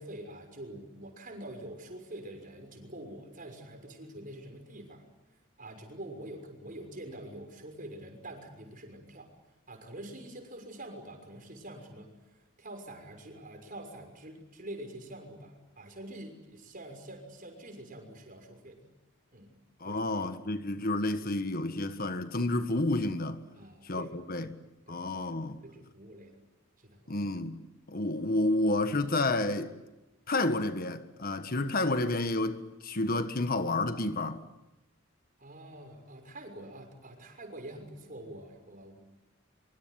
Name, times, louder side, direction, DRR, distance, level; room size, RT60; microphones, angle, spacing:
voice 1, 0.0-5.0 5.3-9.3 9.7-18.8 19.3-19.5 19.8-20.3 23.5-24.1 24.4-24.5 24.9-25.3 25.6-26.4 26.8-27.2 35.4-39.0, right 1 dB, 45° right, 6.3 m, -46 dB
voice 2, 19.8-23.4 23.8-24.5 24.9-25.6 27.1-27.6 27.9-29.7 30.3-34.4, left 2 dB, 50° left, 1.5 m, -30 dB
24.5 x 24.5 x 9.7 m
head